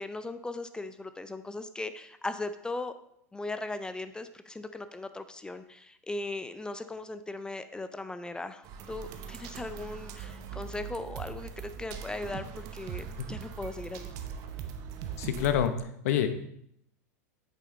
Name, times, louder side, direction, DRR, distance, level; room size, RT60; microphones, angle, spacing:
voice 1, 0.0-2.9 3.3-14.1, left 2 dB, 10° left, 11 dB, 0.4 m, -38 dB
sound 1, 8.6-15.7, right 7 dB, 45° right, 0.9 m, -41 dB
voice 2, 15.2-16.4, left 9 dB, 60° left, 9 dB, 0.9 m, -28 dB
8.3 x 6.8 x 3.9 m, 0.71 s
hypercardioid pair, 90°, 9 cm